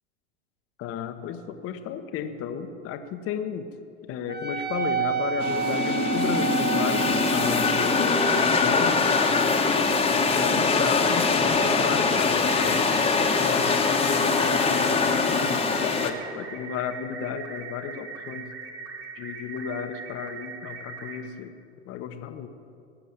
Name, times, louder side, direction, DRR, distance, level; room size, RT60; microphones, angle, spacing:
voice 1, 0.8-3.7 4.0-9.6 10.2-12.8 13.3-18.5 19.1-21.5 21.8-22.5, left 7 dB, 40° left, 8 dB, 1.1 m, -33 dB
Wind instrument woodwind instrument, 4.3-13.2, right 7 dB, 30° right, 1.7 m, -33 dB
sound 1, 5.4-16.1, left 4 dB, 15° left, 1.3 m, -23 dB
sound 2, 12.5-21.2, right 5 dB, 70° right, 2.6 m, -40 dB
18.5 x 7.1 x 7.3 m, 2.4 s
hypercardioid pair, 90°, 34 cm